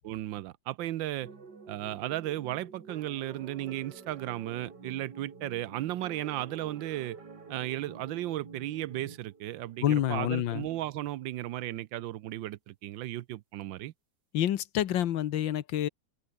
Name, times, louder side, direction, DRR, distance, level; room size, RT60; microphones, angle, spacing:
voice 1, 0.0-1.3 1.7-7.2 7.5-13.9, right 14 dB, 85° right, 1.5 m, -35 dB
sound 1, 1.2-10.5, right 4 dB, 60° right, 3.6 m, -49 dB
voice 2, 9.8-10.7 14.3-15.9, left 11 dB, 80° left, 1.7 m, -28 dB
omnidirectional pair, 2.0 m